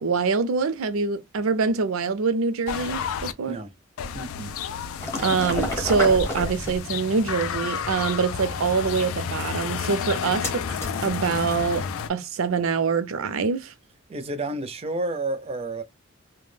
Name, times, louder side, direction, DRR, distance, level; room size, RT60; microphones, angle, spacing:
voice 1, 0.0-3.6 5.2-10.6 11.0-13.7, right 5 dB, 85° right, 0.5 m, -24 dB
sound 1, 2.7-3.3 4.0-12.1, left 7 dB, 85° left, 0.3 m, -31 dB
voice 2, 4.1-4.5 14.1-15.8, right 2 dB, 30° right, 0.5 m, -30 dB
sound 2, 5.0-12.0, left 1 dB, 15° left, 0.8 m, -34 dB
2.2 x 2.1 x 3.1 m
head